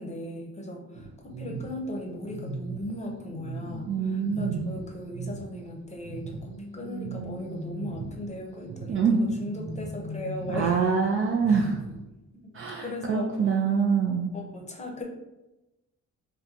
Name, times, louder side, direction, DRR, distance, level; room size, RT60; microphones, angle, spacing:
voice 1, 0.0-10.9 11.5-11.6 12.8-13.6 14.3-15.0, left 1 dB, 25° left, 0 dB, 0.7 m, -37 dB
sound 1, 0.9-5.6 5.9-12.0, right 2 dB, 90° right, 0.7 m, -38 dB
voice 2, 3.9-4.7 8.9-9.2 10.5-11.8 12.5-14.3, right 6 dB, 45° right, 1 dB, 0.4 m, -25 dB
3.7 x 2.2 x 2.8 m, 0.99 s
cardioid pair, 90°, 30 cm